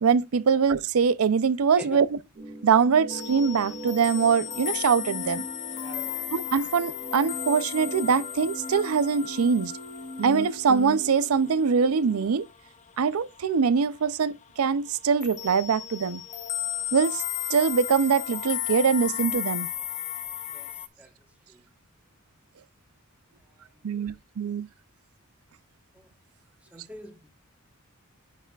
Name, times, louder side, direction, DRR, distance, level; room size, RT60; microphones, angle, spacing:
voice 1, 0.0-2.1 2.6-5.4 6.3-9.7 10.2-12.5 13.0-16.2 16.9-17.2 17.5-19.7 23.8-24.7, right 6 dB, 80° right, 0.5 m, -23 dB
sound 1, 2.3-12.2, equal, 45° right, 2.5 m, -40 dB
sound 2, 3.1-13.5 13.8-14.1 14.4-20.9, left 11 dB, 35° left, 0.5 m, -35 dB
voice 2, 5.8-6.3 20.5-20.7 21.0-21.1 21.5-21.6 23.9-24.2 26.7-27.3, right 1 dB, 5° right, 1.1 m, -43 dB
9.1 x 5.7 x 2.3 m
head